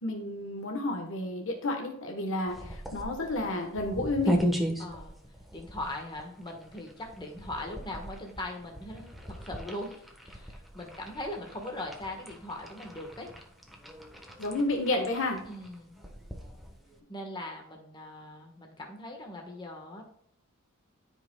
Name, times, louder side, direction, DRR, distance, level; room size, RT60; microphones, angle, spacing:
voice 1, 0.0-4.4 14.4-15.4, left 2 dB, 60° left, 2 dB, 1.2 m, -31 dB
sound 1, 2.5-17.0, equal, ahead, 1.1 m, -38 dB
voice 2, 4.8-5.2 5.5-13.3 15.5-16.0 17.1-20.0, left 1 dB, 20° left, 1 dB, 1.3 m, -40 dB
13.0 x 5.4 x 2.2 m, 0.72 s
head